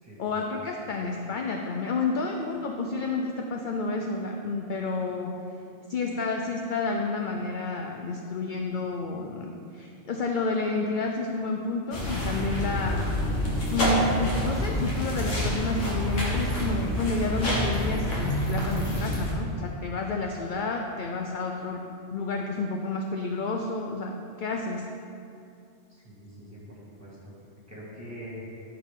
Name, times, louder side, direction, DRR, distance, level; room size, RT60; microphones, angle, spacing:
voice 1, 0.2-5.3 5.9-13.1 13.7-21.8 22.1-24.1 24.4-24.9, left 3 dB, 55° left, 2 dB, 0.6 m, -30 dB
sound 1, 11.9-19.3, left 1 dB, 75° left, 1.9 m, -27 dB
voice 2, 25.9-27.3 27.7-28.4, equal, 15° right, -7 dB, 2.1 m, -44 dB
13.0 x 4.8 x 3.7 m, 2.6 s
omnidirectional pair, 1.3 m